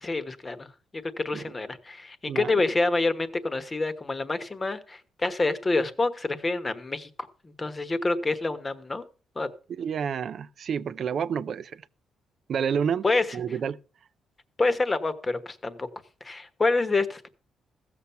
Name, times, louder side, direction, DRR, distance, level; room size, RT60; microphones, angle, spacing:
voice 1, 0.0-7.1 7.4-9.0 9.3-9.5 13.0-13.2 14.6-15.9 16.2-17.3, left 3 dB, 20° left, 1.1 m, -27 dB
voice 2, 2.3-2.6 9.8-11.8 12.5-13.0 13.3-13.8, right 7 dB, 55° right, 0.5 m, -29 dB
15.0 x 7.1 x 5.6 m
cardioid pair, 120°, 0 cm